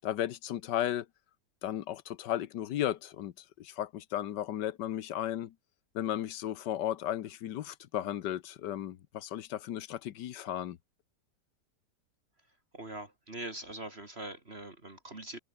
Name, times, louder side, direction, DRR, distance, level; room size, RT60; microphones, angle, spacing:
voice 1, 0.0-1.1 1.6-3.3 3.6-5.5 5.9-10.8, left 12 dB, 85° left, 1.6 m, -35 dB
voice 2, 12.7-15.4, right 1 dB, 35° right, 3.1 m, -42 dB
omnidirectional pair, 1.8 m